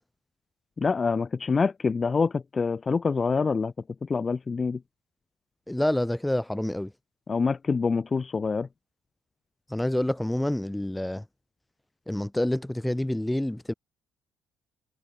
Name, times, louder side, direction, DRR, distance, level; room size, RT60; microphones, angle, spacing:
voice 1, 0.8-3.7 4.0-4.8 7.3-8.7, left 4 dB, 35° left, 0.4 m, -26 dB
voice 2, 5.7-6.9 9.7-11.2 12.1-13.7, left 1 dB, 10° left, 0.8 m, -27 dB
hypercardioid pair, 50°, 0 cm